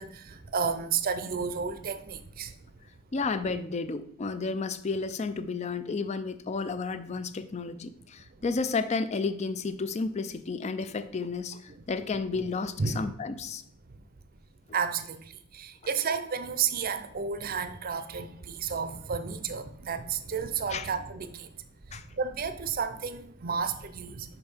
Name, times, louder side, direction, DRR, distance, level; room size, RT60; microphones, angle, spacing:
voice 1, 0.0-2.8 8.3-8.4 11.7-11.8 12.8-13.1 14.7-24.4, right 6 dB, 45° right, 10 dB, 0.5 m, -32 dB
voice 2, 3.1-13.6 20.7-20.9 21.9-22.0, left 4 dB, 30° left, 12 dB, 0.4 m, -32 dB
5.5 x 5.3 x 4.4 m, 0.66 s
head